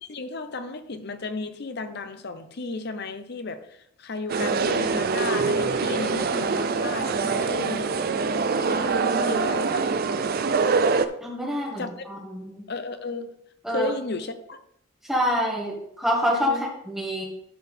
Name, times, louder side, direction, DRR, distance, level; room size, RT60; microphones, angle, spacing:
voice 1, 0.0-7.9 8.5-9.8 11.8-12.0 12.7-13.3 13.7-14.6 16.5-16.7, left 3 dB, 50° left, 9 dB, 0.7 m, -34 dB
sound 1, 4.3-11.1, right 4 dB, 45° right, 0.4 m, -24 dB
voice 2, 11.2-12.6 13.6-13.9 15.0-17.2, equal, ahead, -3 dB, 1.7 m, -27 dB
12.0 x 4.7 x 3.4 m, 0.73 s
head